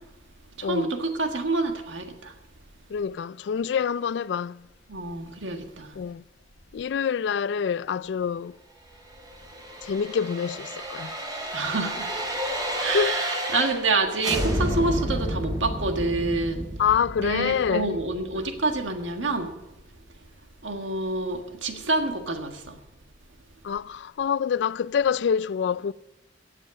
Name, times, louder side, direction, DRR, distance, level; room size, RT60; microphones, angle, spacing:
voice 1, 0.6-2.3 4.9-5.9 11.5-12.1 12.8-16.7 17.2-19.5 20.6-22.8, right 3 dB, 85° right, 1.7 m, -27 dB
voice 2, 2.9-4.6 6.0-6.2 6.7-8.5 9.8-11.1 12.9-13.1 16.8-17.9 23.6-25.9, left 7 dB, 65° left, 0.3 m, -26 dB
sound 1, 9.2-13.9 14.2-19.1 19.4-19.5, equal, 20° right, 2.9 m, -31 dB
16.0 x 7.5 x 6.4 m
head